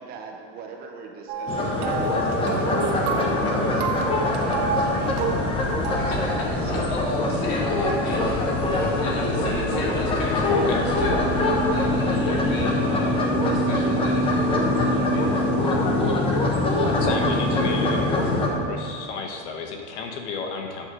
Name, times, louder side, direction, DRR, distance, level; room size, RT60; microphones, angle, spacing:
voice 1, 0.0-5.3 5.6-6.1, right 5 dB, 30° right, 2 dB, 0.6 m, -41 dB
sound 1, 1.3-6.4, right 3 dB, 70° right, 1.2 m, -30 dB
sound 2, 1.5-18.5, left 1 dB, 15° left, 0.7 m, -23 dB
voice 2, 5.9-17.2 17.6-18.2, left 2 dB, 50° left, -3 dB, 2.1 m, -35 dB
voice 3, 16.9-18.2 18.7-20.9, left 5 dB, 85° left, 3 dB, 1.1 m, -31 dB
8.6 x 4.7 x 6.1 m, 2.3 s
supercardioid pair, 165°, 34 cm